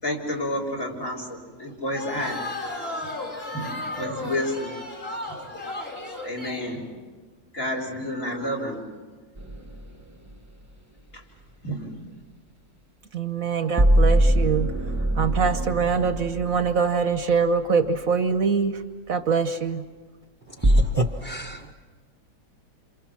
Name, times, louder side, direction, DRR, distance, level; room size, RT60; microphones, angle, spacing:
voice 1, 0.0-2.4 3.5-4.7 6.2-6.8 7.5-8.8 11.1-11.2 11.6-11.9, equal, 50° left, 0 dB, 5.0 m, -30 dB
sound 1, 1.9-6.8, left 2 dB, 35° left, 3.8 m, -34 dB
sound 2, 9.4-9.9 13.8-17.2 20.6-20.8, right 1 dB, 10° right, 1.0 m, -21 dB
voice 2, 13.1-14.7 15.1-18.8 19.1-19.8, right 5 dB, 60° right, 9 dB, 1.3 m, -23 dB
voice 3, 20.6-21.7, right 2 dB, 35° right, 3 dB, 0.9 m, -29 dB
29.0 x 27.0 x 6.1 m, 1.4 s
omnidirectional pair, 1.8 m